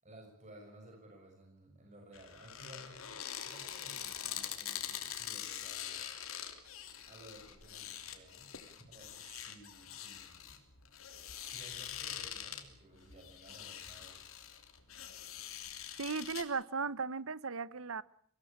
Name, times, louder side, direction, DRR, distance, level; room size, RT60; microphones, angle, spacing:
voice 1, 0.0-6.1 7.1-10.7 11.4-14.3, right 1 dB, 35° right, 6.3 m, -56 dB
sound 1, 2.1-16.4, left 10 dB, 70° left, 3.2 m, -44 dB
voice 2, 16.0-18.0, right 5 dB, 70° right, 0.9 m, -36 dB
25.0 x 17.5 x 8.7 m
head